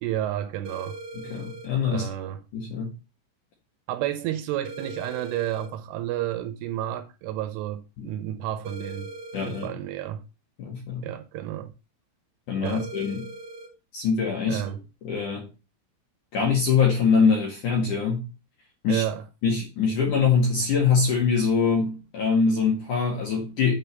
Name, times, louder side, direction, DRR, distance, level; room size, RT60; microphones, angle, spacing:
voice 1, 0.0-1.0 1.9-2.4 3.9-9.1 9.4-10.2 11.0-11.7 12.6-12.9 14.5-14.8 18.9-19.3, right 12 dB, 80° right, 3.2 m, -31 dB
sound 1, 0.6-1.7 4.6-5.7 8.6-9.7 12.6-13.7, right 2 dB, 45° right, 2.6 m, -40 dB
voice 2, 1.1-2.1 2.5-2.9 8.0-8.1 9.3-9.7 10.6-11.1 12.5-13.3 13.9-14.6 15.0-15.5 16.3-18.3 18.8-19.0 19.4-23.7, left 5 dB, 55° left, 2.4 m, -23 dB
9.1 x 4.0 x 6.7 m
omnidirectional pair, 5.9 m